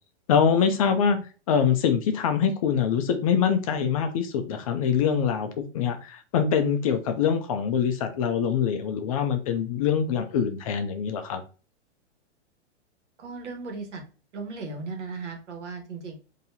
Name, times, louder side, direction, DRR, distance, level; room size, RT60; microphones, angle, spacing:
voice 1, 0.3-1.2 1.5-11.4, left 7 dB, 35° left, 8 dB, 0.4 m, -24 dB
voice 2, 0.8-1.2 13.2-14.0 14.3-16.3, right 3 dB, 85° right, 3 dB, 1.5 m, -37 dB
4.0 x 2.8 x 2.7 m, 0.36 s
hypercardioid pair, 150°, 34 cm